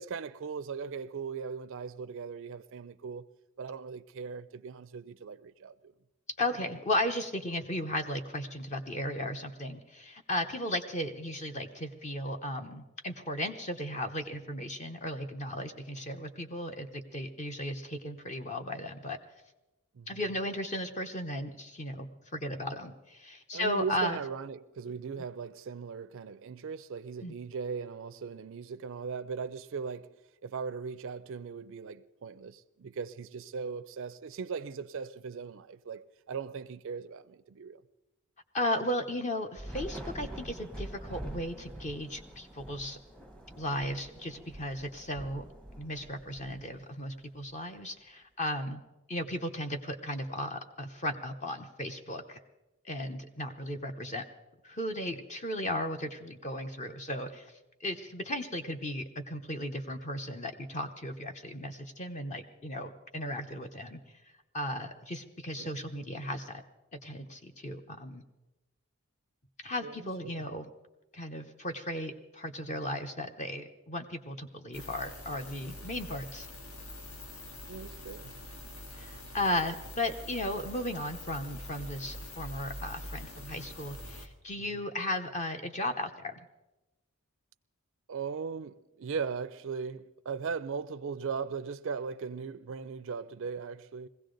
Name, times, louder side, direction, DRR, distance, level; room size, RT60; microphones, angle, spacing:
voice 1, 0.0-3.3 3.6-5.9 19.9-20.3 23.5-30.1 30.4-37.8 65.5-65.9 69.8-70.5 77.7-78.3 84.6-84.8 88.1-94.1, right 5 dB, 60° right, 0.4 m, -39 dB
voice 2, 6.4-19.2 20.1-24.2 27.2-27.3 38.5-43.0 43.6-45.5 45.8-48.8 49.1-52.4 52.8-54.2 54.6-57.5 57.8-64.0 64.5-66.6 66.9-68.2 69.6-70.7 71.1-76.5 78.9-86.5, left 1 dB, 30° left, 0.8 m, -35 dB
Thunder / Rain, 39.5-47.1, right 1 dB, 5° left, 0.8 m, -45 dB
sound 1, 74.7-84.3, left 1 dB, 70° left, 1.6 m, -45 dB
21.0 x 16.0 x 3.9 m
head